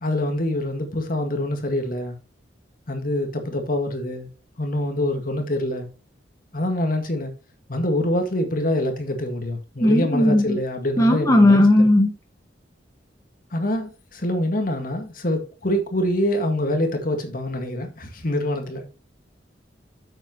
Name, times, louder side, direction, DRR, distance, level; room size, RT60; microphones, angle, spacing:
voice 1, 0.0-2.2 2.9-4.3 4.6-5.9 6.5-7.3 7.7-11.6 13.5-18.9, left 1 dB, 50° left, 1.9 m, -25 dB
voice 2, 9.8-10.6 11.0-12.1, left 1 dB, 20° left, 1.6 m, -16 dB
8.7 x 7.5 x 3.0 m
head